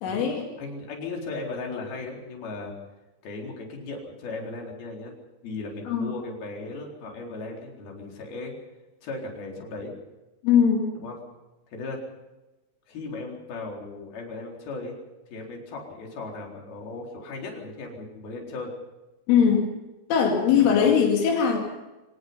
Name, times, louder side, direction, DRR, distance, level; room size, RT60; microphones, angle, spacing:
voice 1, 0.0-0.4 5.9-6.1 10.4-10.9 19.3-19.7 20.1-21.6, left 7 dB, 80° left, 1 dB, 4.9 m, -20 dB
voice 2, 0.6-2.7 3.2-5.1 5.4-8.5 9.0-9.9 11.0-11.2 11.7-12.0 12.9-14.9 15.3-18.7 20.6-20.9, left 3 dB, 50° left, 0 dB, 5.8 m, -36 dB
26.0 x 18.0 x 5.6 m, 1.1 s
omnidirectional pair, 5.6 m